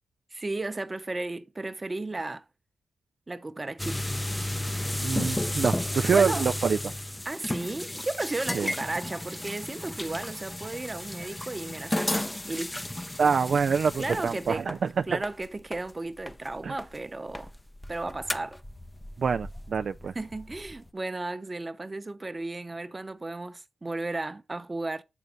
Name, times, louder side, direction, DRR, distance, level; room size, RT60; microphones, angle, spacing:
voice 1, 0.3-2.4 3.3-4.1 5.8-6.5 7.2-12.8 14.0-14.7 15.1-17.5 17.9-18.6 20.1-25.0, right 2 dB, 25° right, 0.8 m, -34 dB
sound 1, 3.8-17.0 17.3-20.9, left 1 dB, 15° left, 0.6 m, -34 dB
voice 2, 5.0-6.8 8.5-8.7 13.2-14.8 15.1-15.2 16.6-16.7 19.2-20.1, right 6 dB, 60° right, 0.3 m, -26 dB
8.2 x 4.0 x 5.1 m
cardioid pair, 90°, 0 cm